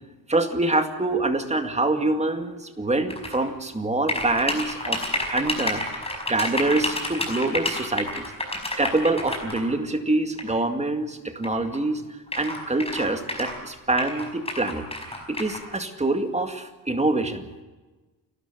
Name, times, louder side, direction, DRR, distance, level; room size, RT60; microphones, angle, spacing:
voice 1, 0.3-5.0 5.3-5.8 6.3-12.0 12.4-14.9 15.3-17.4, right 2 dB, 15° right, 6 dB, 2.2 m, -25 dB
sound 1, 3.1-3.4 4.1-9.6 10.4-10.5 11.4-11.5 11.7-11.8 12.3-13.6 14.0-15.6, left 1 dB, 15° left, 5.2 m, -29 dB
29.5 x 13.0 x 7.9 m, 1.2 s
wide cardioid pair, 145°, 38 cm